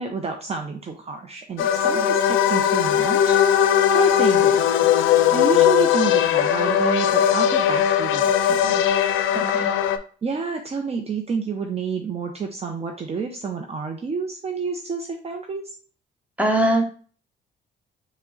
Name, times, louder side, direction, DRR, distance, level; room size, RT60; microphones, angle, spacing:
voice 1, 0.0-3.4 3.9-4.6 5.3-8.8 10.2-15.7, right 5 dB, 30° right, 3 dB, 0.5 m, -29 dB
sound 1, 1.6-10.0, left 10 dB, 85° left, 0.4 m, -19 dB
voice 2, 9.3-9.7 16.4-16.8, right 1 dB, 5° right, 2 dB, 1.0 m, -22 dB
4.6 x 2.1 x 3.8 m, 0.42 s
cardioid pair, 90°, 20 cm